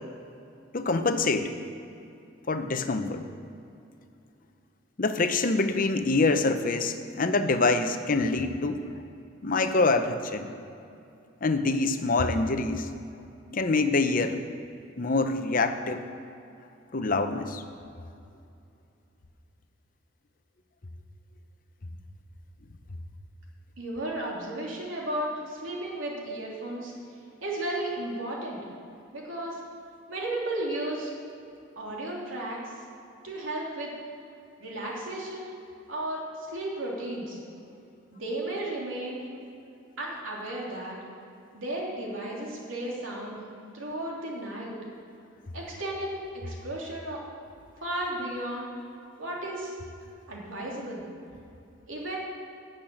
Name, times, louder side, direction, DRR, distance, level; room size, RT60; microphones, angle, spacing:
voice 1, 0.7-1.5 2.5-3.2 5.0-8.9 9.4-10.5 11.4-12.9 13.5-14.4 15.0-16.0 16.9-17.6, left 3 dB, 45° left, 8 dB, 0.8 m, -25 dB
voice 2, 23.8-26.9 27.4-28.6 29.1-29.6 30.1-31.1 31.8-32.6 33.2-33.9 34.6-35.5 35.9-37.4 38.1-39.2 40.0-41.0 41.5-43.4 43.7-44.7 45.5-47.2 47.8-48.7 49.2-49.7 50.3-51.0 51.9-52.2, right 1 dB, 85° right, -3 dB, 3.0 m, -34 dB
12.0 x 6.6 x 8.8 m, 2.6 s
head